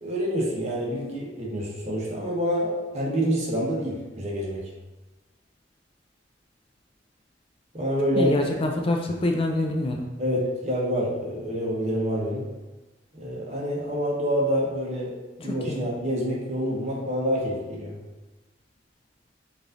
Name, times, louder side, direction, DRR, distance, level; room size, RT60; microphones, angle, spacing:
voice 1, 0.0-4.6 7.7-8.3 10.2-12.4 13.1-15.1 15.4-17.9, equal, 35° right, -4 dB, 1.1 m, -27 dB
voice 2, 8.2-10.1 15.4-15.9, left 1 dB, 30° left, 2 dB, 0.4 m, -26 dB
4.8 x 2.6 x 3.8 m, 1.2 s
head